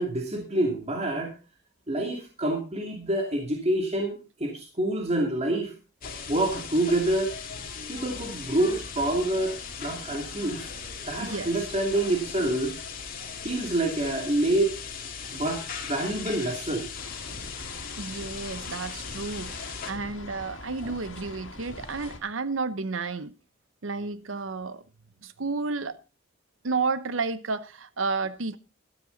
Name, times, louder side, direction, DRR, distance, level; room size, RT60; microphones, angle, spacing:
voice 1, 0.0-1.3 1.9-5.7 6.3-7.3 7.9-10.7 11.0-12.7 13.4-14.7 15.3-16.8 20.8-20.9, right 1 dB, 35° right, 2.6 m, -27 dB
sound 1, 6.0-19.9, left 6 dB, 45° left, 2.4 m, -38 dB
voice 2, 11.2-11.5 18.0-23.3 23.8-24.8 25.2-26.0 26.6-28.6, right 4 dB, 85° right, 0.9 m, -31 dB
sound 2, 16.9-22.2, left 2 dB, 70° left, 2.5 m, -43 dB
13.0 x 12.5 x 4.0 m
head